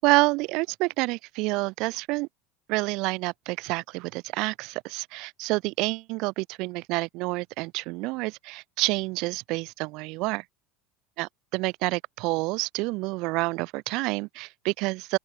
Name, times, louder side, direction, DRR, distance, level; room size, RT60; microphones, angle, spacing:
voice 1, 0.0-2.3 2.7-10.4 11.2-15.2, right 24 dB, 50° right, 5.4 m, -28 dB
open air
supercardioid pair, 155°, 0 cm